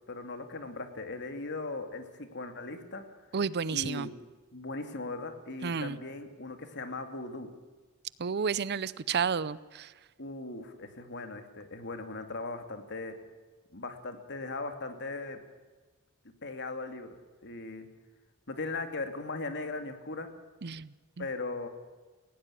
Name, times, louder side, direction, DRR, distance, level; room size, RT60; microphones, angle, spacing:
voice 1, 0.1-3.0 3.7-4.1 4.5-7.5 10.2-13.1 13.7-15.4 16.4-17.1 17.4-17.9 18.5-20.3 21.2-21.7, left 3 dB, 55° left, 7 dB, 2.5 m, -38 dB
voice 2, 3.3-4.1 5.6-6.0 8.2-9.9 20.6-20.9 21.2-21.3, right 6 dB, 50° right, 19 dB, 0.6 m, -31 dB
18.5 x 17.5 x 8.6 m, 1.3 s
head